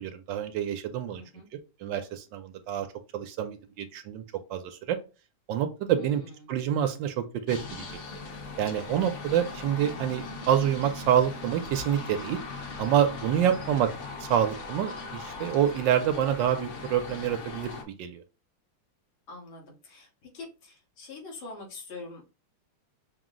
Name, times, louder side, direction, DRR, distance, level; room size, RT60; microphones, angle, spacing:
voice 1, 0.0-1.2 1.8-2.9 3.1-4.2 4.5-5.0 5.5-6.2 6.5-7.9 8.6-12.4 12.8-13.9 14.2-18.2, right 10 dB, 75° right, 8 dB, 1.3 m, -27 dB
voice 2, 1.2-1.5 5.9-6.5 13.5-13.7 19.3-22.2, left 3 dB, 90° left, -1 dB, 2.2 m, -44 dB
sound 1, 7.5-17.8, left 3 dB, 50° left, 0.9 m, -39 dB
6.1 x 2.0 x 3.7 m, 0.32 s
omnidirectional pair, 2.1 m